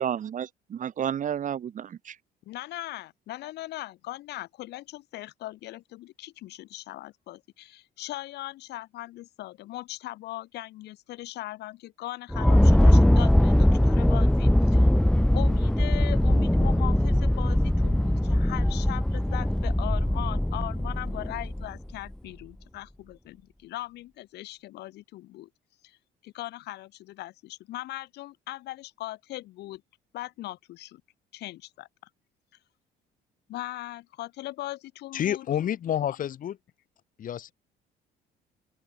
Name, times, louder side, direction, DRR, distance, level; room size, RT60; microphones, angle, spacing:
voice 1, 0.0-2.1, right 9 dB, 50° right, 3.6 m, -31 dB
voice 2, 2.4-14.9 15.3-25.5 25.8-26.0 26.2-29.8 30.1-31.0 31.3-31.9 33.5-35.5, left 16 dB, 80° left, 7.9 m, -39 dB
sound 1, 12.3-21.9, left 1 dB, 5° left, 2.7 m, -21 dB
voice 3, 35.1-36.6 37.2-37.5, left 10 dB, 55° left, 3.6 m, -29 dB
cardioid pair, 110°, 17 cm